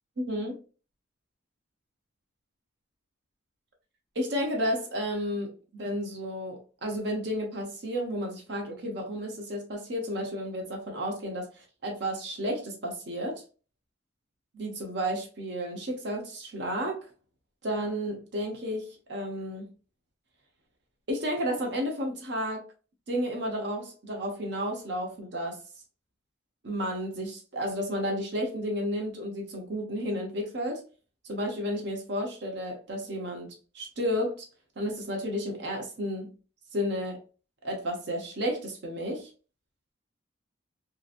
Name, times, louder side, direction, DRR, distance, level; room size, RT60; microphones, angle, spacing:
voice 1, 0.2-0.6 4.1-13.4 14.5-17.0 17.6-19.7 21.1-22.6 23.1-25.6 26.6-30.8 31.2-34.5 34.8-36.3 36.7-37.2 37.6-39.3, equal, 60° right, 0.7 m, -32 dB
2.9 x 2.5 x 2.4 m
head